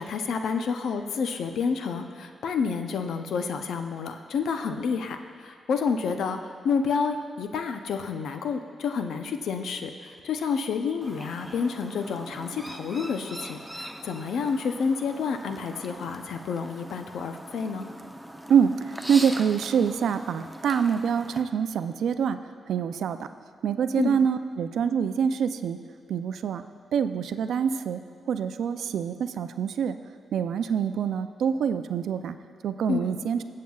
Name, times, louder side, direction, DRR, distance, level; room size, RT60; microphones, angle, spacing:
voice 1, 0.0-6.4 6.6-17.9 24.0-24.2 32.9-33.1, left 5 dB, 85° left, 6 dB, 0.6 m, -29 dB
Chirp tweet, 11.0-21.4, equal, 5° right, 0.7 m, -41 dB
voice 2, 19.1-22.4 22.7-23.2 23.6-25.8 26.1-26.6 26.9-28.0 28.3-30.0 30.3-32.4 32.6-33.4, right 7 dB, 85° right, 10 dB, 0.4 m, -25 dB
20.0 x 7.5 x 2.3 m, 2.2 s
cardioid pair, 70°, 0 cm